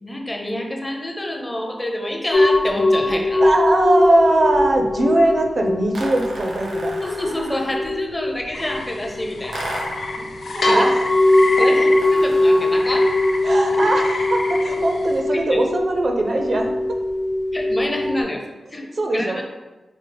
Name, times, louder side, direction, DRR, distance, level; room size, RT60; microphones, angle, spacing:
voice 1, 0.0-3.4 7.0-9.6 10.2-10.3 10.7-10.9 11.6-13.1 13.8-13.9 15.3-15.6 17.5-18.4 18.7-19.4, left 1 dB, 15° left, 1 dB, 0.5 m, -27 dB
sound 1, 2.3-18.2, left 1 dB, 90° left, 0.8 m, -21 dB
voice 2, 3.4-7.0 10.5-11.0 11.6-11.7 13.4-16.7 19.0-19.4, right 2 dB, 45° right, 3 dB, 0.4 m, -20 dB
sound 2, 5.9-7.9 9.5-10.1 11.9-12.9, right 1 dB, 90° right, 0.8 m, -34 dB
sound 3, 8.5-15.2, left 3 dB, 70° left, 0.5 m, -31 dB
4.9 x 2.0 x 3.8 m, 1.2 s
wide cardioid pair, 150°, 0 cm